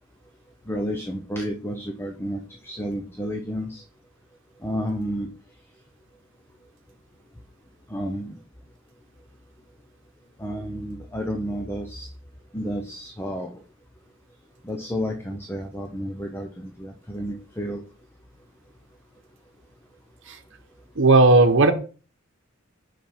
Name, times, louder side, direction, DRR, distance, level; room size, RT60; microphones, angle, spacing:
voice 1, 0.7-3.8 4.6-5.3 7.9-8.4 10.4-12.1 12.5-13.6 14.6-17.8, equal, 10° left, 0.7 m, -31 dB
voice 2, 21.0-21.7, right 3 dB, 65° right, 1.0 m, -14 dB
5.8 x 5.3 x 4.5 m
head